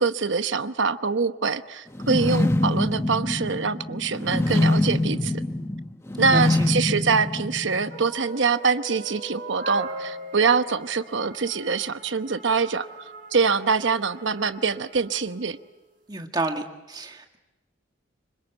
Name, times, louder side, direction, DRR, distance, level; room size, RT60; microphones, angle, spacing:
voice 1, 0.0-5.3 6.2-15.6, right 5 dB, 75° right, 11 dB, 1.0 m, -24 dB
sound 1, 1.9-8.0, left 1 dB, 15° left, 0.9 m, -24 dB
voice 2, 6.3-6.7 16.1-17.4, right 2 dB, 20° right, 4 dB, 1.8 m, -30 dB
sound 2, 7.9-15.4, right 2 dB, 45° right, 4.7 m, -39 dB
26.0 x 25.0 x 8.1 m, 0.99 s
head